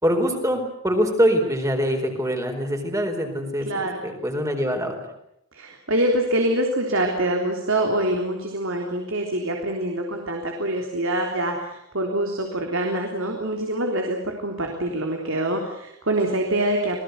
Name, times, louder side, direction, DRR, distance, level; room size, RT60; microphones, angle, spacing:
voice 1, 0.0-4.9, equal, 15° right, 4 dB, 4.4 m, -24 dB
voice 2, 3.7-4.0 5.5-17.0, right 1 dB, 65° right, 2 dB, 3.6 m, -25 dB
28.0 x 19.0 x 8.2 m, 0.79 s
head